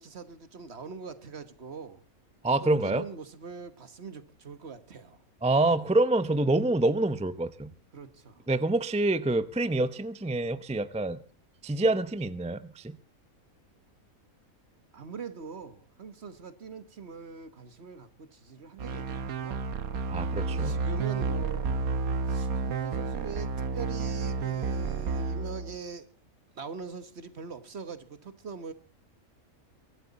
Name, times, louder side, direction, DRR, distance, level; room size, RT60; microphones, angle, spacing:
voice 1, 0.0-2.1 2.5-5.2 7.9-8.4 14.9-19.6 20.5-21.9 22.3-26.1 26.5-28.7, right 5 dB, 50° right, 1.5 m, -42 dB
voice 2, 2.4-3.1 5.4-7.7 8.5-11.2 11.6-13.0 20.1-20.8, right 2 dB, 10° right, 0.3 m, -26 dB
sound 1, 18.8-25.8, right 4 dB, 75° right, 1.5 m, -31 dB
23.5 x 12.5 x 4.1 m
omnidirectional pair, 1.5 m